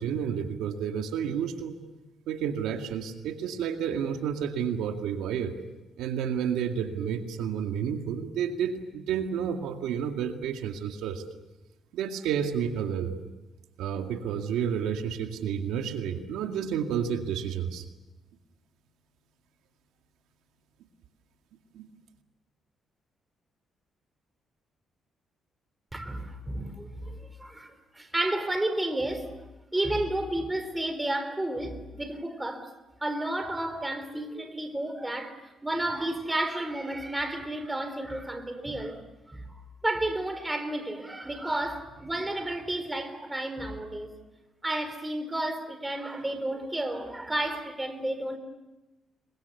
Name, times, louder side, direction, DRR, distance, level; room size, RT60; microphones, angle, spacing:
voice 1, 0.0-1.7 2.3-5.5 6.0-11.2 11.9-13.1 13.8-17.8 21.7-21.8, right 8 dB, 90° right, 2.2 m, -30 dB
voice 2, 25.9-29.3 29.7-32.7 33.0-39.0 39.3-39.4 39.8-44.2 44.6-48.4, right 1 dB, 15° right, 4.3 m, -32 dB
30.0 x 24.0 x 7.0 m
cardioid pair, 90°, 0 cm